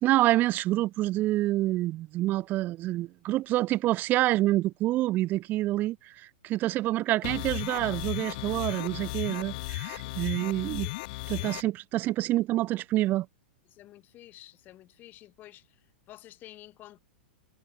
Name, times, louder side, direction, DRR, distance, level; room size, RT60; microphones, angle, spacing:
voice 1, 0.0-10.9 11.3-13.3, right 16 dB, 35° right, 1.0 m, -27 dB
sound 1, 7.2-11.6, left 21 dB, 55° left, 1.4 m, -35 dB
voice 2, 11.4-11.7 13.7-17.0, left 15 dB, 35° left, 2.6 m, -51 dB
hypercardioid pair, 105°, 5 cm